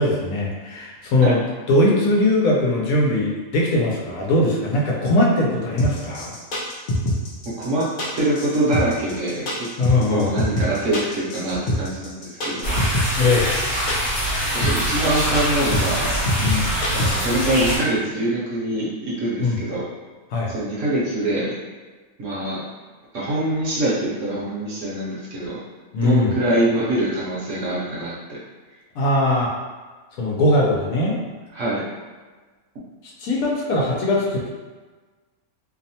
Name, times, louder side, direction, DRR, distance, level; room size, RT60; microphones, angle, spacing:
voice 1, 0.0-1.4 1.7-6.4 9.8-10.3 13.2-13.5 16.4-16.8 19.4-19.6 20.3-20.5 25.9-26.4 28.9-29.5 30.2-31.2 33.2-34.5, left 1 dB, 75° left, -3 dB, 1.0 m, -20 dB
sound 1, 5.8-17.5, left 1 dB, 55° left, 0.5 m, -24 dB
voice 2, 7.4-7.8 8.2-9.7 10.1-12.7 14.5-16.2 16.9-19.8 20.5-21.5 22.2-22.6 23.1-25.6 26.0-28.4 31.5-31.8, right 1 dB, 60° right, -7 dB, 1.1 m, -24 dB
sound 2, 12.6-17.8, equal, 40° left, 1.1 m, -24 dB
2.8 x 2.1 x 2.7 m, 1.3 s
omnidirectional pair, 1.5 m